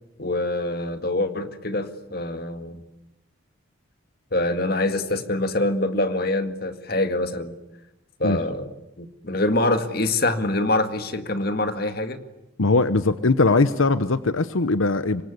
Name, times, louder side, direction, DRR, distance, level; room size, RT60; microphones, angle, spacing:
voice 1, 0.2-2.8 4.3-7.6 8.2-12.2, left 2 dB, 50° left, 9 dB, 2.0 m, -25 dB
voice 2, 12.6-15.2, left 3 dB, 85° left, 13 dB, 1.0 m, -20 dB
26.0 x 23.5 x 9.6 m, 0.93 s
head